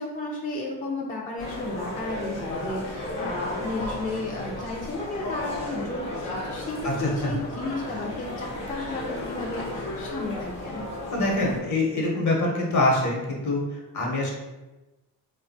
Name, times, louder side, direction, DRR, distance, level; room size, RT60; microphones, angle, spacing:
voice 1, 0.0-10.9, left 2 dB, 25° left, -2 dB, 0.4 m, -33 dB
sound 1, 1.4-11.6, left 2 dB, 90° left, 0.7 m, -34 dB
voice 2, 11.1-13.6 13.9-14.3, left 2 dB, 50° left, -2 dB, 0.9 m, -24 dB
2.7 x 2.2 x 2.6 m, 1.1 s
supercardioid pair, 65°, 37 cm